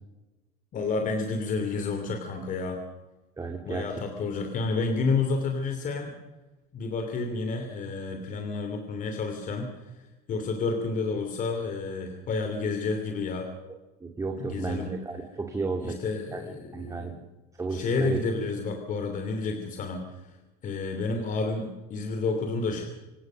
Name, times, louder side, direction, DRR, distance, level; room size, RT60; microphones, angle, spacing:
voice 1, 0.7-2.8 3.6-6.2 6.7-13.5 14.4-15.0 15.8-17.2 17.7-20.4 20.6-22.8, left 4 dB, 40° left, 5 dB, 2.9 m, -30 dB
voice 2, 3.4-3.9 14.0-16.0 16.3-16.4 16.7-17.1 17.6-18.2, right 4 dB, 15° right, 3 dB, 2.3 m, -32 dB
26.0 x 17.0 x 6.3 m, 1.1 s
cardioid pair, 130°, 21 cm